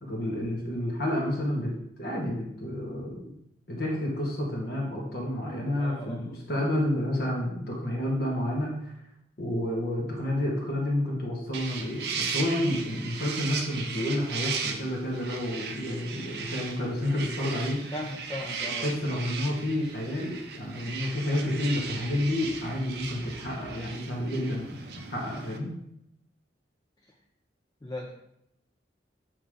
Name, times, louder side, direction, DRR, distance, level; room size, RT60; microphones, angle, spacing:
voice 1, 0.0-1.7 2.0-3.4 3.7-8.9 9.4-17.8 18.8-24.7 25.1-25.7, left 1 dB, 55° left, -3 dB, 1.2 m, -30 dB
voice 2, 5.8-6.3 17.9-18.9 27.0-27.1 27.8-28.1, left 1 dB, 20° left, 0 dB, 0.5 m, -37 dB
sound 1, 11.5-25.6, right 5 dB, 60° right, 0.6 m, -37 dB
7.4 x 2.9 x 4.8 m, 0.78 s
head